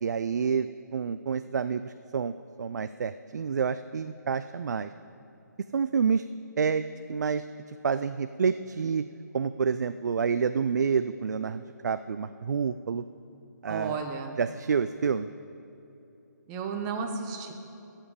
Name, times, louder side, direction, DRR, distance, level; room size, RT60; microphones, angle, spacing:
voice 1, 0.0-2.3 2.6-4.9 5.7-6.2 6.6-6.8 7.1-7.5 7.8-9.0 9.3-13.0 13.6-14.0 14.4-15.3, right 6 dB, 65° right, 12 dB, 0.4 m, -28 dB
voice 2, 13.7-14.4 16.5-17.5, right 5 dB, 20° right, 4 dB, 0.8 m, -33 dB
18.5 x 7.3 x 5.1 m, 2.9 s
figure-of-eight pair, 150°, 10 cm